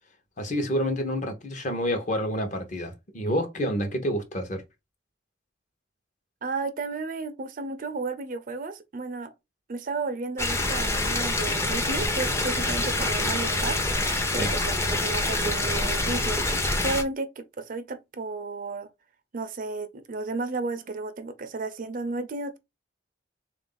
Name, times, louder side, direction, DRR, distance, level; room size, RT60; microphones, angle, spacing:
voice 1, 0.4-4.6 14.4-14.5, equal, 40° left, 0.8 m, -28 dB
voice 2, 6.4-9.3 9.7-13.8 14.3-16.4 16.8-18.9 19.3-22.6, right 3 dB, 45° right, 0.5 m, -33 dB
sound 1, 10.4-17.0, left 2 dB, 15° left, 0.5 m, -26 dB
3.7 x 2.5 x 3.8 m
head